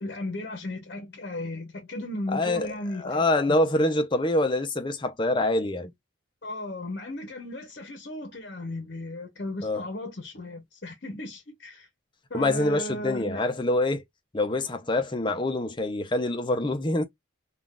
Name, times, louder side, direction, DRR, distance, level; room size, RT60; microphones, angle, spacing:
voice 1, 0.0-3.2 6.4-11.9 12.3-13.4, left 1 dB, 50° left, 0.8 m, -35 dB
voice 2, 2.3-2.7 3.0-5.9 9.6-9.8 12.3-14.0 14.3-17.0, left 2 dB, 25° left, 0.5 m, -25 dB
3.6 x 2.4 x 2.3 m
head